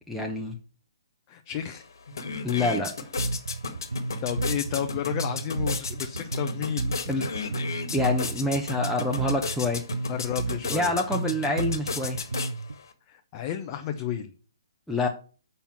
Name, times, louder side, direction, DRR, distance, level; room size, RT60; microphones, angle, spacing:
voice 1, 0.1-0.6 2.4-2.9 7.1-7.4 7.9-9.8 10.7-12.2 14.9-15.1, left 2 dB, ahead, -2 dB, 0.9 m, -27 dB
voice 2, 1.3-1.8 4.2-7.2 10.1-10.9 13.1-14.3, left 10 dB, 30° left, 5 dB, 0.8 m, -32 dB
sound 1, 1.6-1.7 2.0-12.9, left 5 dB, 65° left, 1.6 m, -35 dB
Bass guitar, 3.2-12.7, right 2 dB, 85° right, 0.5 m, -32 dB
7.2 x 5.6 x 5.8 m, 0.38 s
figure-of-eight pair, 135°, 2 cm